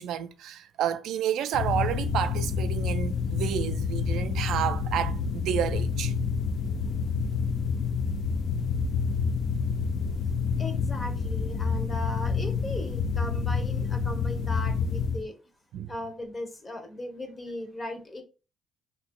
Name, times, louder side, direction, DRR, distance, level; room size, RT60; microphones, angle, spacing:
voice 1, 0.0-6.1 15.7-15.9, right 10 dB, 80° right, 0.4 m, -30 dB
sound 1, 1.5-15.2, left 5 dB, 70° left, 0.5 m, -28 dB
voice 2, 10.6-15.3 15.9-18.2, left 1 dB, 25° left, 0.9 m, -37 dB
3.0 x 2.6 x 3.5 m
cardioid pair, 90°, 0 cm